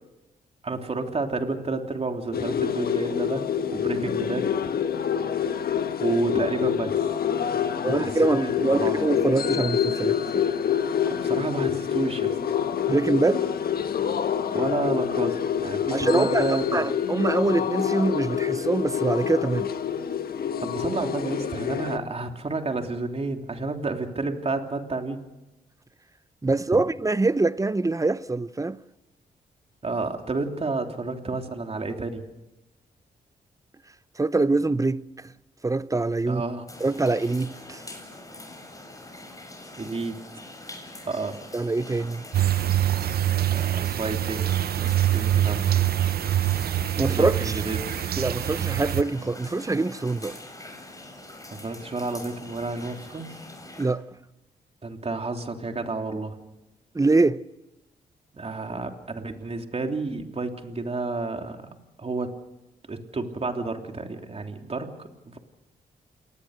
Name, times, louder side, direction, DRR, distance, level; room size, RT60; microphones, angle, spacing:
voice 1, 0.6-4.7 6.0-8.5 8.8-9.0 11.1-12.3 14.5-16.8 20.6-25.2 29.8-32.2 36.2-36.6 39.7-40.2 41.0-41.4 43.5-45.7 47.1-48.1 51.5-53.3 54.8-56.4 58.3-62.4 62.9-65.4, right 3 dB, 40° right, 3.3 m, -30 dB
sound 1, 2.3-22.0, left 8 dB, 65° left, 1.5 m, -27 dB
voice 2, 7.8-10.5 12.9-13.5 15.9-19.7 26.4-28.8 34.2-35.3 35.6-36.4 36.8-37.8 41.5-42.3 47.0-47.6 48.2-50.4 53.8-54.1 56.9-57.4, right 3 dB, 20° right, 0.8 m, -24 dB
sound 2, 36.7-53.9, left 2 dB, 20° left, 7.4 m, -44 dB
sound 3, 42.3-49.0, right 12 dB, 70° right, 0.8 m, -24 dB
28.5 x 19.0 x 6.6 m
cardioid pair, 65°, 16 cm